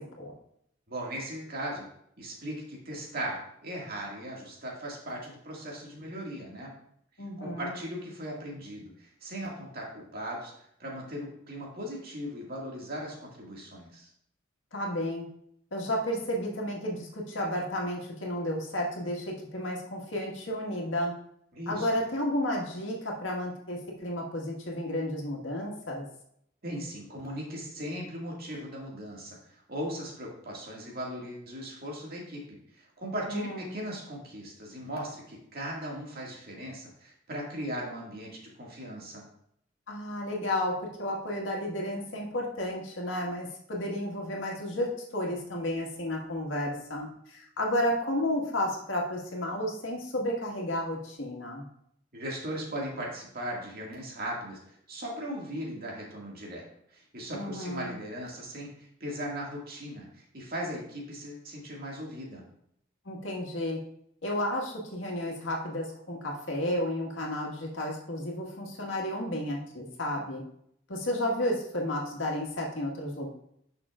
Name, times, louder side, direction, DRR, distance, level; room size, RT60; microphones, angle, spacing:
voice 1, 0.9-1.8 2.2-6.7 7.4-10.5 10.8-14.1 21.5-21.9 26.6-39.2 52.1-54.6 54.9-56.6 56.9-62.4, equal, 50° right, -2 dB, 2.1 m, -38 dB
voice 2, 7.2-7.8 14.7-15.3 15.7-21.1 21.7-26.1 33.3-33.8 39.9-51.7 57.3-58.0 63.1-63.8 64.2-70.4 70.9-73.3, left 1 dB, 80° left, -1 dB, 1.8 m, -32 dB
9.9 x 6.3 x 2.5 m, 0.70 s
head